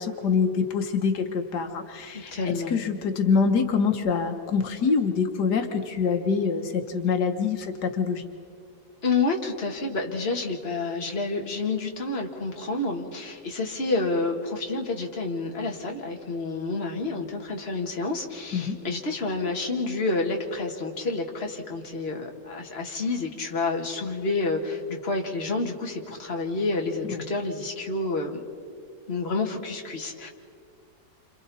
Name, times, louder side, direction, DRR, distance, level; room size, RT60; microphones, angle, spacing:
voice 1, 0.0-8.3 18.5-18.8 27.1-27.2, left 5 dB, 85° left, 5 dB, 1.8 m, -25 dB
voice 2, 2.1-2.8 9.0-28.4 29.1-30.3, left 3 dB, 40° left, 1 dB, 2.0 m, -29 dB
29.0 x 27.0 x 4.2 m, 2.3 s
omnidirectional pair, 1.7 m